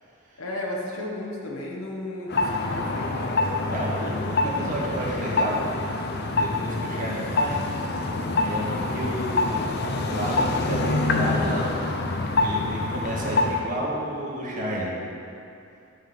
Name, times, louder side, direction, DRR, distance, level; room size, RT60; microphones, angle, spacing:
voice 1, 0.4-3.4, left 1 dB, 80° left, -2 dB, 1.2 m, -34 dB
sound 1, 2.3-13.7, left 2 dB, 50° left, 0.7 m, -26 dB
voice 2, 3.7-5.6 6.2-7.6 8.4-11.7 12.4-14.9, equal, 40° right, -5 dB, 2.0 m, -31 dB
9.9 x 5.7 x 6.0 m, 2.6 s
head